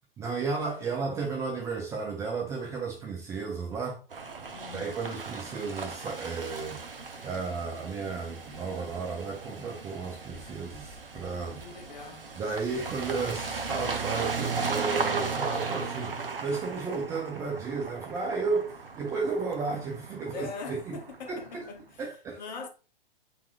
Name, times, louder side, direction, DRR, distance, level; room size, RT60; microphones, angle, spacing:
voice 1, 0.2-4.0 4.7-6.8 7.2-11.6 12.4-21.0 21.3-21.7 22.0-22.4, right 4 dB, 10° right, 0.4 m, -33 dB
sound 1, 4.1-21.7, right 4 dB, 70° right, 0.8 m, -37 dB
voice 2, 4.4-5.2 11.6-12.3 20.3-22.0 22.4-22.7, left 5 dB, 50° left, 0.9 m, -42 dB
4.3 x 4.1 x 2.3 m
figure-of-eight pair, 110°, 29 cm